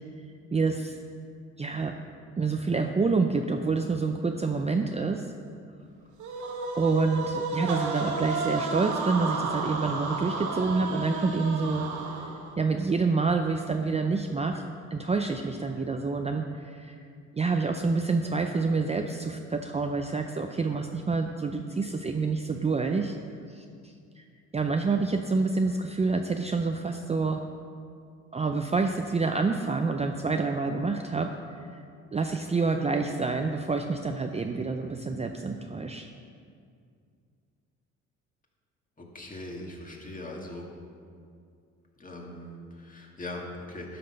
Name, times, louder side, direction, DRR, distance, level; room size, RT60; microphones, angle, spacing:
voice 1, 0.5-1.0 1.6-1.9 2.4-5.3 6.8-11.9 12.6-14.6 14.9-17.0 17.3-23.2 23.5-23.6 24.2-24.3 24.5-27.4 28.3-31.3 31.7-31.8 32.1-36.1, right 4 dB, 20° right, 4 dB, 0.5 m, -27 dB
sound 1, 6.2-12.5, right 3 dB, 75° right, 1.7 m, -32 dB
voice 2, 39.0-40.7 42.0-44.0, left 1 dB, 25° left, -1 dB, 1.9 m, -40 dB
12.0 x 5.9 x 5.5 m, 2.3 s
cardioid pair, 90°, 30 cm